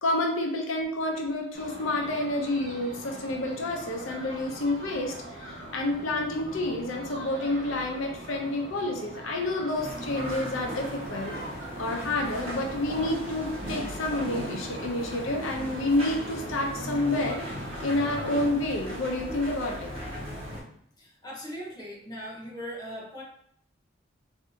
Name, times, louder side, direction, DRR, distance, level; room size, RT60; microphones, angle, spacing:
voice 1, 0.0-11.3 11.8-17.4 17.8-19.9, left 2 dB, 85° left, 2 dB, 0.6 m, -29 dB
sound 1, 1.5-18.5, right 1 dB, 55° right, 1.0 m, -42 dB
sound 2, 9.7-20.6, equal, 30° right, 1.2 m, -38 dB
voice 2, 21.0-23.2, equal, 20° left, -3 dB, 0.7 m, -39 dB
3.4 x 2.6 x 2.6 m, 0.68 s
head